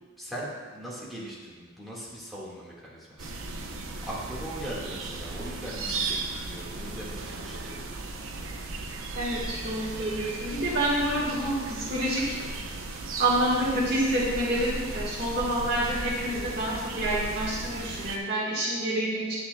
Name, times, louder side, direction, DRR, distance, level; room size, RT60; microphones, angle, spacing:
voice 1, 0.2-3.3 4.0-7.9, right 1 dB, ahead, -7 dB, 1.7 m, -40 dB
sound 1, 3.2-18.2, right 3 dB, 75° right, 0.7 m, -36 dB
voice 2, 9.1-12.3 13.2-19.4, right 1 dB, 50° right, -8 dB, 1.5 m, -28 dB
9.4 x 8.4 x 2.3 m, 1.4 s
head